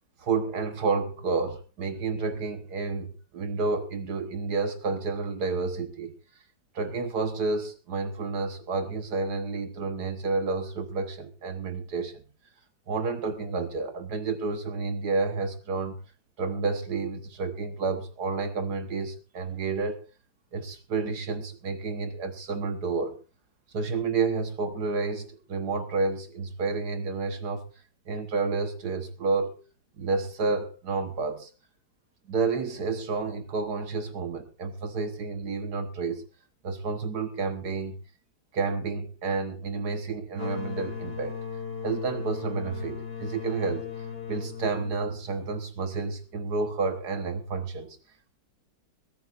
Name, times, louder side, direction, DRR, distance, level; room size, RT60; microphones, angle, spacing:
voice 1, 0.2-6.1 6.8-12.2 12.9-16.0 16.4-20.0 20.5-23.2 23.7-27.6 28.1-29.6 30.0-31.5 32.3-36.2 36.6-38.0 38.5-41.4 41.8-43.9 44.3-48.0, right 4 dB, 65° right, 1.8 m, -30 dB
sound 1, 40.3-45.8, left 6 dB, 65° left, 2.8 m, -37 dB
21.5 x 15.5 x 2.5 m
omnidirectional pair, 1.9 m